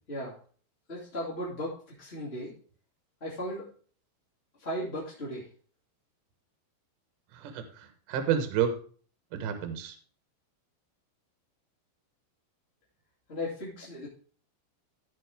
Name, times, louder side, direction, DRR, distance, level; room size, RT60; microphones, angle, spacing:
voice 1, 0.9-2.5 3.2-3.6 4.6-5.5 13.3-14.1, equal, 20° left, -7 dB, 1.9 m, -36 dB
voice 2, 7.3-8.7 9.3-10.0, right 8 dB, 65° right, 7 dB, 2.4 m, -30 dB
14.0 x 5.8 x 3.5 m, 0.44 s
omnidirectional pair, 4.7 m